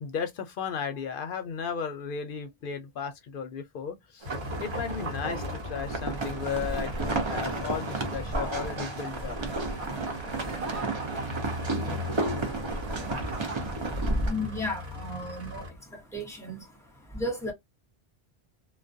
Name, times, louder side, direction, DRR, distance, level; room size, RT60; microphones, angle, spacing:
voice 1, 0.0-4.3 4.6-9.4, left 6 dB, 60° left, 0.7 m, -35 dB
sound 1, 4.2-14.3, right 2 dB, 35° right, 0.5 m, -32 dB
sound 2, 4.3-15.7, left 1 dB, 55° right, 1.2 m, -39 dB
sound 3, 7.0-14.5, right 3 dB, 80° right, 1.0 m, -42 dB
voice 2, 13.3-17.5, left 1 dB, 5° left, 0.9 m, -36 dB
2.3 x 2.1 x 2.5 m
omnidirectional pair, 1.1 m